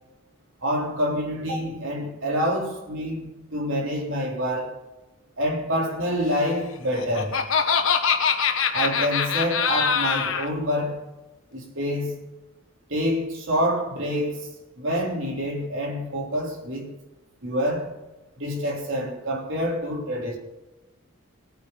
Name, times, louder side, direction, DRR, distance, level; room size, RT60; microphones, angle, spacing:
voice 1, 0.6-4.7 5.4-7.4 8.7-11.1 11.5-12.2 12.9-14.5 14.8-16.9 17.4-17.9 18.4-20.4, equal, 75° right, 3.5 m, -27 dB
Laughter, 6.7-10.5, left 6 dB, 80° left, 1.2 m, -23 dB
18.0 x 9.4 x 3.9 m
head